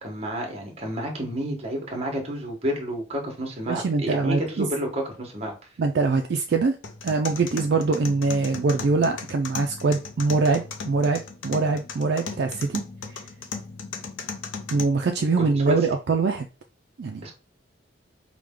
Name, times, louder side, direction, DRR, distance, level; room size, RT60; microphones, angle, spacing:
voice 1, 0.0-5.5 15.4-15.9 17.2-17.3, equal, 30° right, 2 dB, 1.1 m, -30 dB
voice 2, 3.7-4.7 5.8-6.8 7.0-12.8 14.7-16.5 17.0-17.2, right 4 dB, 55° right, 5 dB, 0.3 m, -23 dB
sound 1, 6.8-14.8, left 5 dB, 85° left, 0.7 m, -37 dB
4.8 x 2.2 x 3.5 m, 0.33 s
head